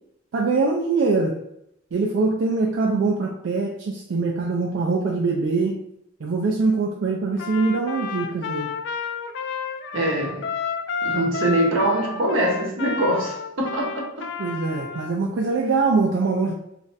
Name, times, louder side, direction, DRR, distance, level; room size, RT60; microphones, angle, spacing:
voice 1, 0.3-1.4 1.9-5.8 6.2-8.7 14.4-16.5, right 3 dB, 65° right, -1 dB, 0.4 m, -23 dB
Trumpet, 7.4-15.1, left 5 dB, 65° left, 0.3 m, -31 dB
voice 2, 9.9-10.5 11.0-14.1, right 1 dB, 85° right, -1 dB, 0.8 m, -23 dB
2.5 x 2.2 x 3.9 m, 0.78 s
head